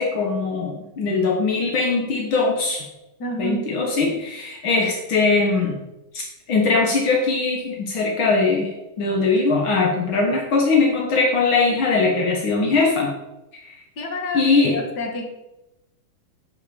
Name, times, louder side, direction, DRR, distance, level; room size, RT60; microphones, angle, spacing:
voice 1, 0.0-2.8 3.4-5.7 6.1-13.1 13.6-13.8 14.3-14.8, left 3 dB, 70° left, 0 dB, 1.2 m, -21 dB
voice 2, 3.2-3.7 14.0-15.3, left 1 dB, 45° left, 3 dB, 1.5 m, -29 dB
10.5 x 5.2 x 7.1 m, 0.95 s
omnidirectional pair, 4.0 m